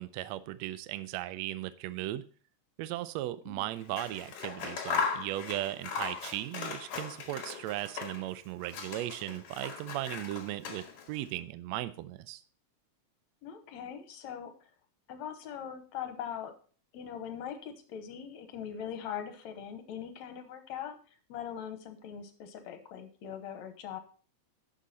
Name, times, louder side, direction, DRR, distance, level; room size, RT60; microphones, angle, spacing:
voice 1, 0.0-2.2 2.8-12.4, right 15 dB, 80° right, 13 dB, 1.7 m, -37 dB
Scissors, 3.8-8.3 8.6-11.2, left 5 dB, 55° left, 2.3 m, -38 dB
voice 2, 13.4-14.7 15.1-16.5 16.9-24.0, left 8 dB, 70° left, 8 dB, 2.3 m, -41 dB
11.0 x 6.4 x 4.1 m, 0.42 s
omnidirectional pair, 3.4 m